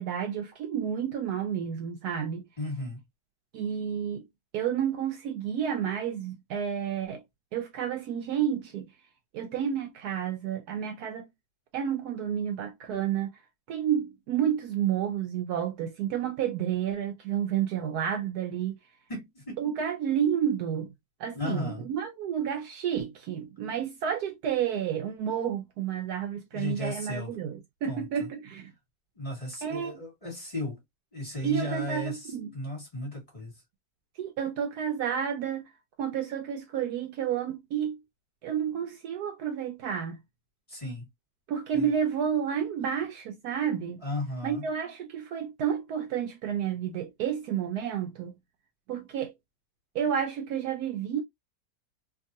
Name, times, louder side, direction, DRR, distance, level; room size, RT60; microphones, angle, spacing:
voice 1, 0.0-2.4 3.5-4.2 4.5-7.2 7.5-8.9 9.3-11.3 11.7-13.3 13.7-18.7 19.6-20.9 21.2-28.7 29.6-30.0 31.4-32.5 34.2-35.6 36.0-38.0 38.4-40.2 41.5-44.0 44.4-48.4 48.9-49.3 49.9-51.2, right 8 dB, 70° right, 1.0 m, -30 dB
voice 2, 2.6-3.0 19.1-19.7 21.3-21.9 26.5-27.3 27.9-28.3 29.2-30.8 31.1-33.5 40.7-41.0 41.7-41.9 44.0-44.6, left 1 dB, 20° left, 1.4 m, -35 dB
2.9 x 2.4 x 2.6 m
omnidirectional pair, 1.9 m